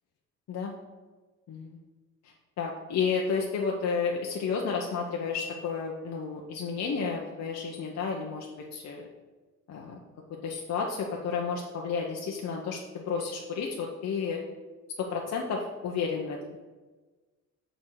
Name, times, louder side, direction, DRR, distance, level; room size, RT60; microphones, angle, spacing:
voice 1, 1.5-1.8 2.2-9.1 9.7-10.0 10.4-14.4 15.0-16.4, left 5 dB, 60° left, -1 dB, 1.0 m, -31 dB
6.4 x 4.6 x 6.5 m, 1.3 s
cardioid pair, 90°, 30 cm